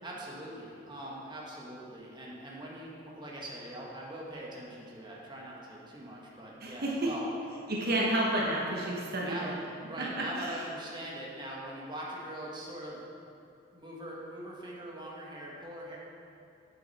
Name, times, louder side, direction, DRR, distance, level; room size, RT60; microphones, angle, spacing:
voice 1, 0.0-7.3 9.2-9.5 9.8-13.1 13.7-16.0, right 1 dB, 25° right, -4 dB, 1.4 m, -42 dB
voice 2, 6.6-7.1 7.7-9.5 10.0-10.5, right 1 dB, 55° right, -3 dB, 1.1 m, -30 dB
8.6 x 7.6 x 4.2 m, 2.6 s
head